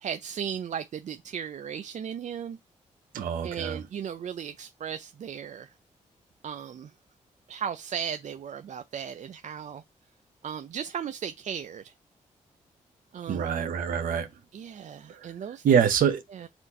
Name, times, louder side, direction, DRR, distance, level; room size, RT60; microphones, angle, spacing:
voice 1, 0.0-2.6 3.4-5.7 6.4-6.9 7.5-9.8 10.4-11.9 13.1-13.5 14.5-15.8 16.3-16.5, right 8 dB, 60° right, 0.5 m, -36 dB
voice 2, 3.1-3.8 13.3-14.3 15.1-15.2 15.6-16.2, right 7 dB, 85° right, 0.9 m, -25 dB
4.4 x 2.5 x 4.1 m
cardioid pair, 55°, 14 cm